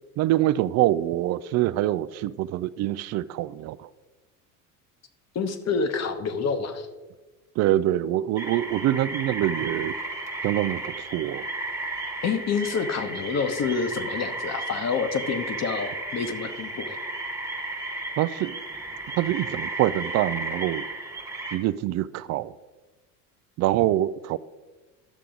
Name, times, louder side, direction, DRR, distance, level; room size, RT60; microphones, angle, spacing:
voice 1, 0.2-3.9 7.6-9.9 10.4-11.4 18.2-18.5 19.2-20.9 21.5-22.5 23.6-24.4, right 14 dB, 40° right, 17 dB, 0.4 m, -25 dB
voice 2, 5.3-6.9 12.2-17.0, left 5 dB, 35° left, 9 dB, 1.1 m, -28 dB
sound 1, 8.4-21.6, right 2 dB, 5° right, 1.3 m, -34 dB
11.0 x 6.7 x 3.8 m, 1.2 s
hypercardioid pair, 75°, 45 cm